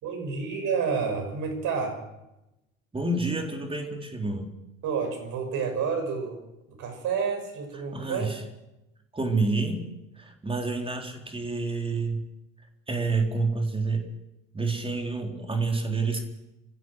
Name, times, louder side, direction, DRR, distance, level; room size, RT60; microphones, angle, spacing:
voice 1, 0.0-2.0 4.8-6.4 6.7-8.3, right 5 dB, 50° right, 4 dB, 6.2 m, -29 dB
voice 2, 2.9-4.5 7.9-8.4 9.1-9.9 10.2-12.2 12.9-14.1 14.5-16.2, right 3 dB, 15° right, 3 dB, 4.0 m, -28 dB
26.0 x 15.5 x 6.4 m, 0.91 s
figure-of-eight pair, 60°, 40 cm